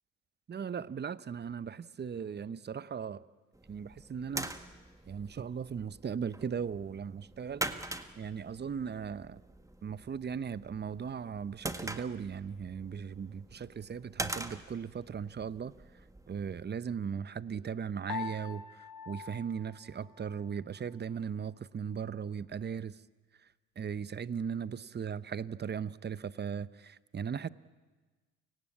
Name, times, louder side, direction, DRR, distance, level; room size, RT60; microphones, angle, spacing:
voice 1, 0.5-3.2 3.7-4.5 5.0-7.7 8.2-9.4 9.8-15.7 16.3-18.6 19.1-22.9 23.8-27.5, right 7 dB, 30° right, 0.8 m, -38 dB
sound 1, 3.5-16.6, right 2 dB, 10° right, 1.6 m, -44 dB
Piano, 18.1-20.6, left 6 dB, 60° left, 1.9 m, -43 dB
29.5 x 17.0 x 8.6 m
supercardioid pair, 70°, 36 cm